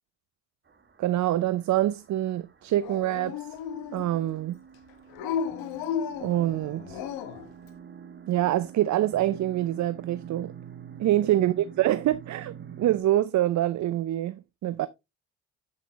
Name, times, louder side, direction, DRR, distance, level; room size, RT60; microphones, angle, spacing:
sound 1, 0.7-13.0, right 8 dB, 30° right, 1.2 m, -46 dB
voice 1, 1.0-3.4 3.9-4.6 6.2-7.0 8.3-10.5 11.0-14.9, right 13 dB, 50° right, 0.5 m, -25 dB
Dog, 2.8-4.3 5.1-7.5, left 7 dB, 75° left, 1.0 m, -34 dB
7.8 x 5.8 x 2.9 m
hypercardioid pair, 50°, 37 cm